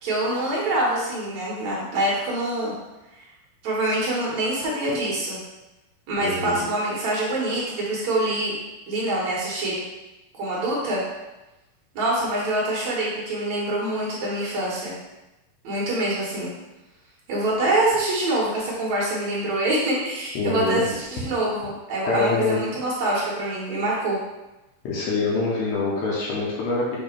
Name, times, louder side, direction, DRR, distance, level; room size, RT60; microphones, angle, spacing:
voice 1, 0.0-2.7 3.2-3.3 3.6-5.4 6.1-8.5 8.9-9.8 10.3-11.0 11.9-14.9 15.6-16.5 17.3-24.2, right 1 dB, 65° right, -6 dB, 1.8 m, -25 dB
voice 2, 6.2-6.6 20.4-20.8 22.1-22.6 24.8-27.0, left 3 dB, 70° left, -4 dB, 2.6 m, -25 dB
6.9 x 3.1 x 4.5 m, 1.0 s
omnidirectional pair, 4.9 m